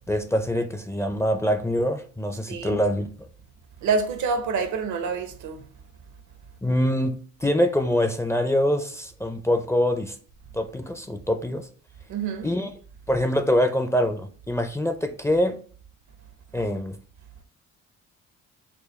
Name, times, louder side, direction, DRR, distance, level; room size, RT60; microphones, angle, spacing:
voice 1, 0.1-3.1 6.6-7.2 7.4-10.1 10.5-11.7 12.4-12.7 13.1-15.6 16.5-17.0, equal, 10° left, 0.4 m, -24 dB
voice 2, 2.5-2.8 3.8-5.7 12.1-12.5, right 5 dB, 75° right, 0.8 m, -27 dB
4.6 x 2.2 x 3.1 m
cardioid pair, 90°, 30 cm